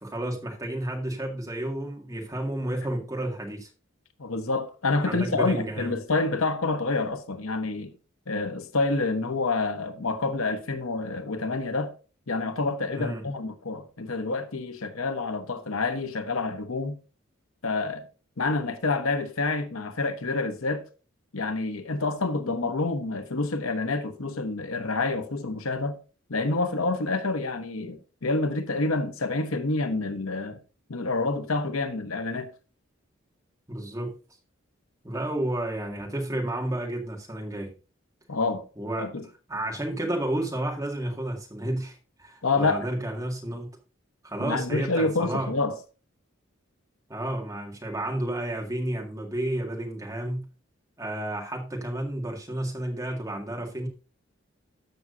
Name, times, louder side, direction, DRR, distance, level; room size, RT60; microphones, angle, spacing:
voice 1, 0.0-3.7 5.0-6.0 12.9-13.2 33.7-34.1 35.0-37.7 38.8-39.1 39.5-43.7 44.2-45.5 47.1-50.5 51.0-53.9, right 1 dB, 15° right, 1.9 m, -31 dB
voice 2, 4.2-7.9 8.3-11.9 12.3-17.0 17.6-18.1 18.4-20.9 21.3-26.0 26.3-30.6 30.9-32.5 38.3-38.6 39.0-39.2 42.4-42.9 44.4-45.8, left 3 dB, 90° left, 1.0 m, -28 dB
13.5 x 6.1 x 2.6 m
head